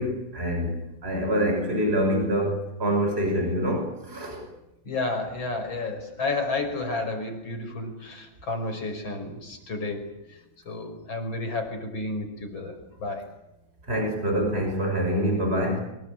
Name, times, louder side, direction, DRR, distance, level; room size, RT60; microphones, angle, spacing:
voice 1, 0.0-4.4 13.8-15.8, equal, 25° right, 2 dB, 6.2 m, -26 dB
voice 2, 4.8-10.4 10.7-13.2, left 2 dB, 60° left, 4 dB, 6.2 m, -31 dB
25.0 x 23.0 x 9.1 m, 0.92 s
omnidirectional pair, 2.4 m